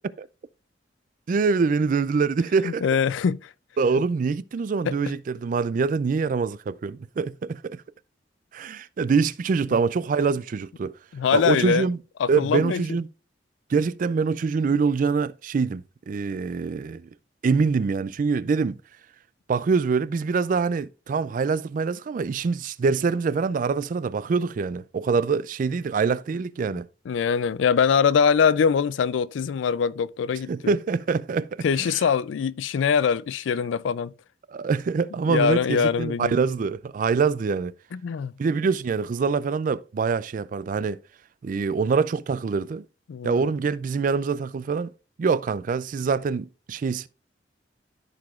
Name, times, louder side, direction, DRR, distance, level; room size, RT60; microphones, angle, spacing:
voice 1, 1.3-2.8 3.8-7.8 8.5-10.9 11.3-12.0 12.3-13.1 13.7-17.1 17.4-18.8 19.5-26.9 30.5-32.0 34.5-37.7 38.4-41.0 41.4-42.8 43.2-44.9 45.2-47.1, right 5 dB, 45° right, 0.3 m, -25 dB
voice 2, 2.6-3.5 4.9-5.0 11.1-11.9 12.2-12.8 26.7-26.8 27.1-30.7 31.6-34.1 35.3-36.3 37.9-38.3 43.1-43.4, left 6 dB, 80° left, 0.3 m, -23 dB
14.0 x 4.8 x 2.4 m
head